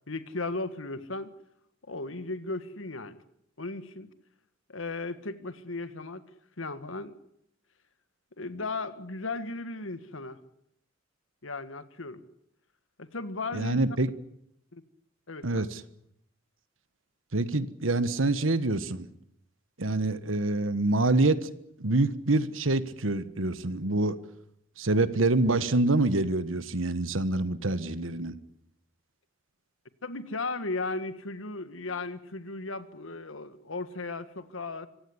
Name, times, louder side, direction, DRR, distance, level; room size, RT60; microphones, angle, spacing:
voice 1, 0.1-1.3 1.9-3.2 3.6-4.1 4.7-6.2 6.6-7.1 8.4-10.4 11.4-12.2 13.0-13.8 14.7-14.8 15.3-15.7 30.0-34.9, left 3 dB, 90° left, 1.7 m, -36 dB
voice 2, 13.5-14.1 15.4-15.8 17.3-19.1 19.8-21.5 21.8-24.2 24.8-28.3, right 2 dB, 85° right, 1.4 m, -26 dB
25.0 x 17.0 x 9.9 m
head